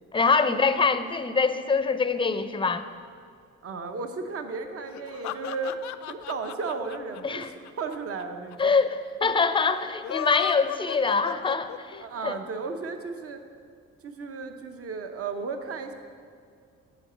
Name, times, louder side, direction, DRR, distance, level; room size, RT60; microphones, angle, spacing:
voice 1, 0.1-2.8 7.2-7.5 8.6-12.4, left 4 dB, 15° left, 11 dB, 0.5 m, -24 dB
voice 2, 3.6-5.8 6.1-8.7 9.2-9.3 12.0-13.4 14.0-15.9, right 4 dB, 50° right, 6 dB, 0.9 m, -34 dB
sound 1, 4.9-8.2 8.5-8.6 8.8-8.9 9.9-12.0, left 12 dB, 70° left, 0.4 m, -34 dB
9.9 x 4.9 x 7.3 m, 2.2 s
cardioid pair, 90°, 30 cm